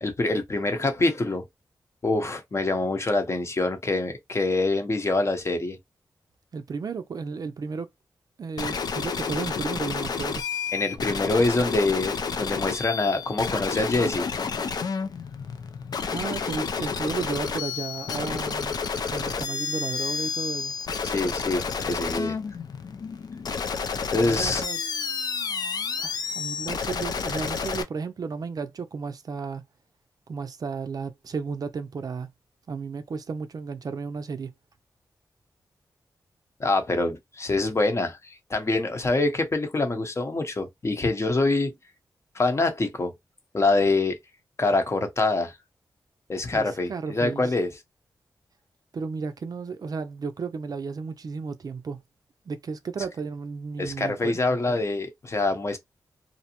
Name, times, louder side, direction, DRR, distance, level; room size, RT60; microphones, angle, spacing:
voice 1, 0.0-1.4 2.0-5.8 10.7-14.3 21.0-22.4 24.1-24.6 36.6-41.7 42.3-43.1 43.5-44.2 44.6-45.6 46.3-47.7 53.8-55.8, left 2 dB, 40° left, 0.8 m, -25 dB
voice 2, 6.5-7.9 8.4-10.4 16.1-18.7 19.1-20.7 24.1-24.8 26.0-29.6 30.3-32.3 32.7-34.5 46.5-47.4 48.9-52.0 52.5-54.4, right 5 dB, 60° right, 0.4 m, -33 dB
sound 1, 8.6-27.8, left 5 dB, 65° left, 0.4 m, -30 dB
2.6 x 2.0 x 2.8 m
cardioid pair, 60°, 7 cm